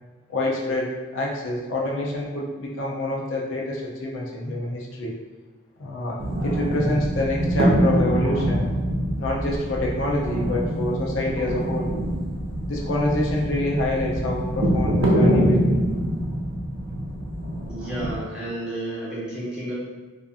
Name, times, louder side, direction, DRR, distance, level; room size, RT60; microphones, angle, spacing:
voice 1, 0.3-5.1 5.8-8.6 9.2-11.9 12.7-15.8, left 1 dB, 70° left, -3 dB, 0.4 m, -27 dB
sound 1, 6.2-18.2, equal, 80° right, 0.5 m, -24 dB
voice 2, 17.6-19.7, right 1 dB, 5° right, -10 dB, 0.7 m, -31 dB
2.5 x 2.4 x 2.3 m, 1.3 s
head